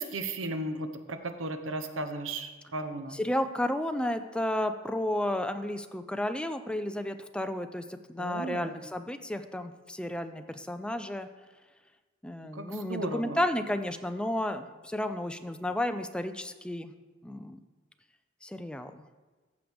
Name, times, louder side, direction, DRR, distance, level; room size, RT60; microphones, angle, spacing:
voice 1, 0.0-3.2 8.2-8.7 12.5-13.4, right 2 dB, 90° right, 8 dB, 0.9 m, -35 dB
voice 2, 3.1-11.3 12.2-16.9 17.2-17.6 18.4-19.0, left 1 dB, 5° left, 8 dB, 0.4 m, -32 dB
14.5 x 6.4 x 3.5 m, 1.3 s
head